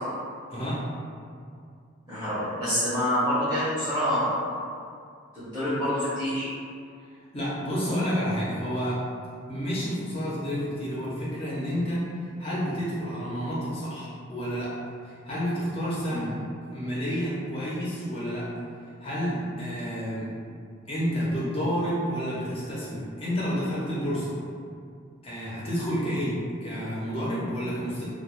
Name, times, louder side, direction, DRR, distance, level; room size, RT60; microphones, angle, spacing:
voice 1, 0.5-0.8 7.3-9.0 9.5-12.1 12.4-14.7 15.0-16.4 16.7-18.5 19.0-20.3 20.9-24.4 25.2-28.0, equal, 30° left, -8 dB, 0.7 m, -30 dB
voice 2, 2.1-4.4 5.3-6.5 16.1-16.2, equal, 15° right, -14 dB, 0.7 m, -26 dB
2.3 x 2.2 x 3.0 m, 2.3 s
head